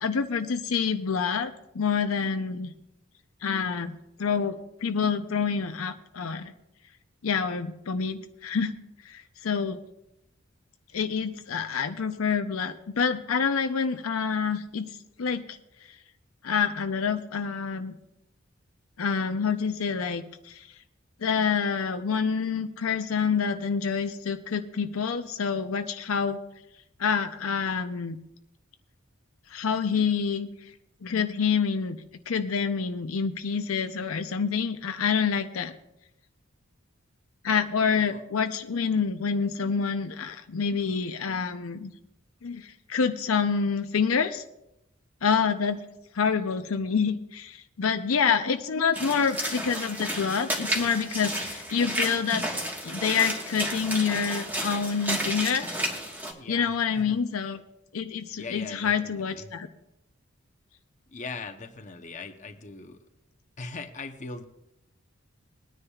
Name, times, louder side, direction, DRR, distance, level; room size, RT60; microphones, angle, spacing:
voice 1, 0.0-2.7 3.4-3.9 4.2-6.5 7.2-8.8 9.0-9.8 10.9-15.6 16.4-18.0 19.0-20.7 21.2-26.4 27.0-28.2 29.5-30.5 31.0-32.0 32.3-35.7 37.4-41.9 42.4-44.4 45.2-45.8 46.1-52.4 52.8-55.9 56.5-57.6 57.9-59.7, left 6 dB, 80° left, 8 dB, 0.6 m, -27 dB
Walk footsteps / Splash splatter, 48.9-56.3, equal, 10° right, 1.4 m, -32 dB
voice 2, 56.4-57.2 58.4-59.5 61.1-63.0 63.6-64.4, left 4 dB, 35° left, 5 dB, 0.8 m, -40 dB
21.5 x 9.8 x 2.4 m, 0.85 s
head